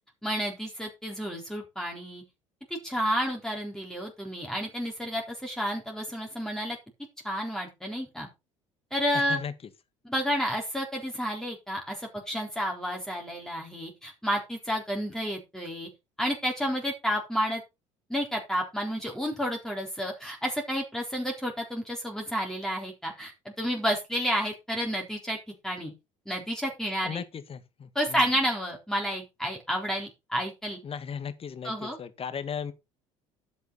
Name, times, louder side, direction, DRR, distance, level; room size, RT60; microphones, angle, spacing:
voice 1, 0.2-2.2 2.7-6.8 7.2-8.3 8.9-9.4 10.0-15.9 16.2-17.6 18.1-25.4 25.6-25.9 26.3-27.2 28.0-30.8 31.6-32.0, equal, 5° left, 3.9 m, -30 dB
voice 2, 9.1-9.5 27.0-28.3 30.8-32.7, left 7 dB, 35° left, 1.8 m, -36 dB
11.0 x 8.2 x 4.1 m
hypercardioid pair, 60°, 16 cm